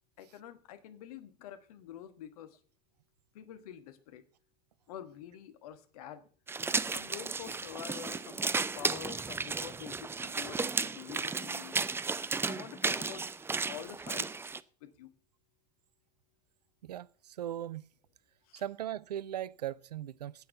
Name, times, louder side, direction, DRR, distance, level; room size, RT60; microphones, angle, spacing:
voice 1, 0.2-2.6 3.3-4.2 4.9-6.2 6.9-11.8 12.5-13.3 13.7-14.5 14.8-15.1 18.5-18.6, left 10 dB, 60° left, 1.3 m, -47 dB
sound 1, 6.5-14.6, right 4 dB, 10° right, 0.5 m, -34 dB
voice 2, 16.8-17.9 18.5-20.5, right 11 dB, 75° right, 0.5 m, -39 dB
9.6 x 8.5 x 6.8 m
figure-of-eight pair, 70°, 21 cm